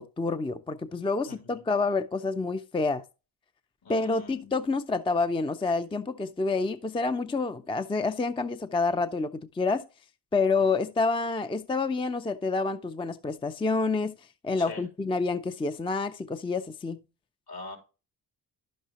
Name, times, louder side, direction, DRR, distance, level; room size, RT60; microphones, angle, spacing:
voice 1, 0.0-3.0 3.9-9.9 10.3-14.2 14.4-17.0, left 3 dB, 15° left, 0.5 m, -28 dB
voice 2, 1.2-1.6 3.8-4.5 14.6-14.8 17.5-17.8, left 3 dB, 60° left, 3.3 m, -43 dB
11.0 x 6.5 x 2.9 m
cardioid pair, 70°, 43 cm